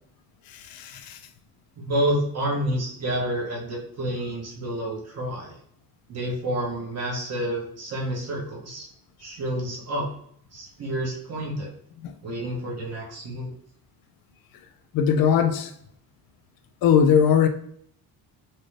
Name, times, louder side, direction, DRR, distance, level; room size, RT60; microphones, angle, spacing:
voice 1, 0.5-1.2 12.0-12.1 14.9-15.7 16.8-17.5, left 7 dB, 65° left, 0.5 m, -20 dB
voice 2, 1.8-5.6 6.1-8.9 9.2-10.1 10.5-11.7 12.2-13.5, right 1 dB, 40° right, 1.4 m, -29 dB
4.0 x 2.5 x 3.2 m
cardioid pair, 165°, 39 cm